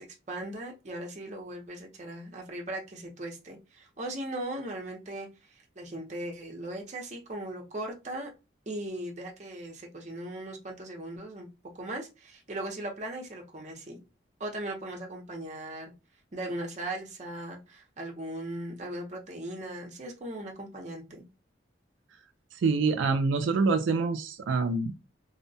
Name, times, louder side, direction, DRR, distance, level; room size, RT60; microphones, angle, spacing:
voice 1, 0.0-8.3 8.7-11.5 11.7-14.0 14.4-15.9 16.3-21.3, right 1 dB, 35° right, 0.6 m, -38 dB
voice 2, 22.5-25.0, right 4 dB, 85° right, 0.4 m, -26 dB
2.7 x 2.1 x 2.6 m
head